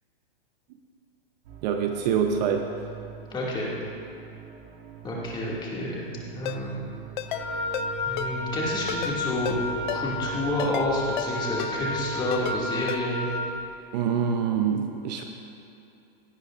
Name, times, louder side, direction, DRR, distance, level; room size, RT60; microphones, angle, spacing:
sound 1, 1.4-12.7, right 10 dB, 70° right, 2.1 m, -44 dB
voice 1, 1.6-2.7 13.9-15.2, right 7 dB, 45° right, 5 dB, 0.8 m, -25 dB
voice 2, 3.3-3.7 5.0-6.8 8.0-9.6 9.9-13.3, left 1 dB, 15° left, -5 dB, 2.4 m, -29 dB
Ringtone, 6.5-6.6 7.2-7.4 7.7-7.9 8.2-8.3 8.9-9.2 9.5-9.6 9.9-10.0 10.6-10.9 11.2-11.3 11.6-11.7 12.3-12.6 12.9-13.0, left 14 dB, 55° left, 0.5 m, -32 dB
Wind instrument woodwind instrument, 7.3-13.5, left 1 dB, 35° left, 2.2 m, -32 dB
17.0 x 9.6 x 2.6 m, 2.7 s
hypercardioid pair, 135°, 30 cm